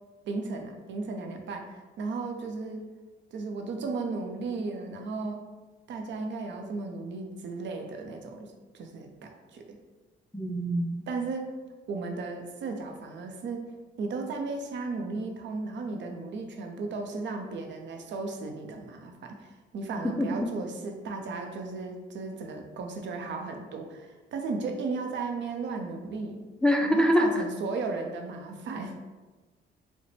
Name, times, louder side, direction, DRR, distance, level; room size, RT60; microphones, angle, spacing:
voice 1, 0.2-2.9 3.3-5.4 5.9-9.8 11.1-11.5 11.9-13.7 14.0-26.4 26.8-29.0, right 3 dB, 65° right, 4 dB, 0.6 m, -35 dB
voice 2, 10.3-11.0 20.2-20.5 26.6-27.3, equal, 5° left, 3 dB, 0.3 m, -24 dB
4.9 x 2.1 x 3.3 m, 1.2 s
cardioid pair, 90°, 20 cm